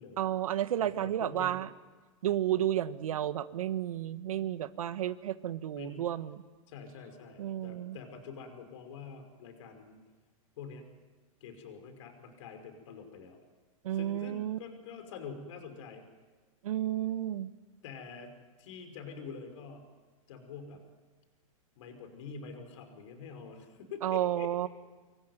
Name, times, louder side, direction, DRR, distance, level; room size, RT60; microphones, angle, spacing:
voice 1, 0.2-1.7 2.2-6.4 7.4-8.0 13.8-14.6 16.6-17.5 24.0-24.7, right 12 dB, 80° right, 13 dB, 1.4 m, -32 dB
voice 2, 0.8-1.6 5.7-6.0 6.7-10.0 10.6-10.8 11.4-13.4 13.9-16.0 17.8-18.3 18.6-19.8 20.3-20.8 21.8-24.7, left 5 dB, 60° left, 6 dB, 5.5 m, -46 dB
26.5 x 23.0 x 9.6 m, 1.3 s
hypercardioid pair, 150°, 18 cm